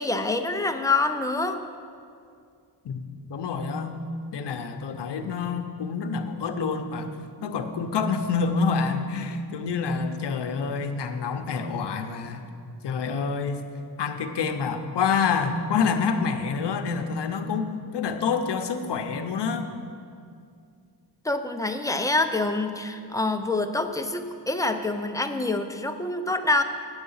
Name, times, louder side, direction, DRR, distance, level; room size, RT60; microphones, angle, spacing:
voice 1, 0.0-1.6 21.2-26.6, left 2 dB, 10° left, 6 dB, 0.4 m, -26 dB
voice 2, 3.3-4.0 4.3-7.1 7.4-12.5 12.8-13.6 14.0-17.7 17.9-19.7, left 5 dB, 65° left, 7 dB, 0.8 m, -27 dB
9.4 x 8.0 x 5.5 m, 2.3 s
wide cardioid pair, 140°, 44 cm